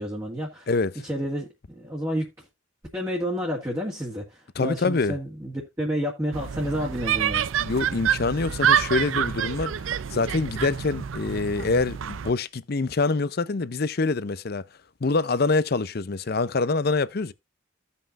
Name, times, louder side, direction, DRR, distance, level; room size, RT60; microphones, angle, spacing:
voice 1, 0.0-0.7 1.0-2.5 2.9-7.5, equal, 15° right, 1.8 m, -30 dB
voice 2, 4.6-5.2 7.6-9.7 10.1-14.6 15.0-17.3, left 3 dB, 50° left, 0.6 m, -25 dB
sound 1, 6.3-12.3, right 8 dB, 75° right, 0.5 m, -27 dB
16.0 x 5.5 x 2.5 m
head